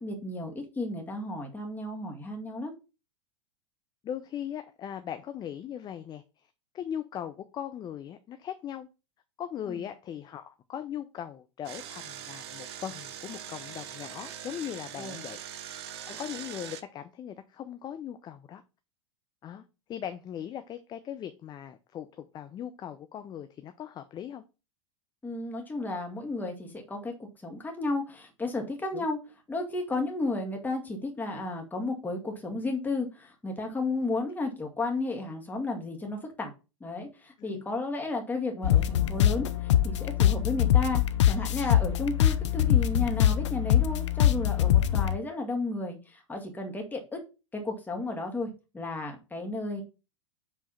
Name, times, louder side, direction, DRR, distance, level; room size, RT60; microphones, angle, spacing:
voice 1, 0.0-2.7 9.7-9.8 15.0-15.3 25.2-29.2 29.5-36.5 36.8-41.0 41.3-47.2 47.5-48.5 48.7-49.8, left 2 dB, 10° left, 1.9 m, -33 dB
voice 2, 4.0-6.2 6.7-8.9 9.4-15.4 16.1-18.6 19.4-19.6 19.9-24.4 28.9-29.1 37.4-37.6, left 9 dB, 25° left, 0.6 m, -39 dB
Engine, 11.7-16.8, right 10 dB, 60° right, 0.8 m, -42 dB
sound 1, 38.6-45.2, left 11 dB, 70° left, 0.6 m, -23 dB
5.2 x 3.4 x 5.6 m
hypercardioid pair, 95°, 16 cm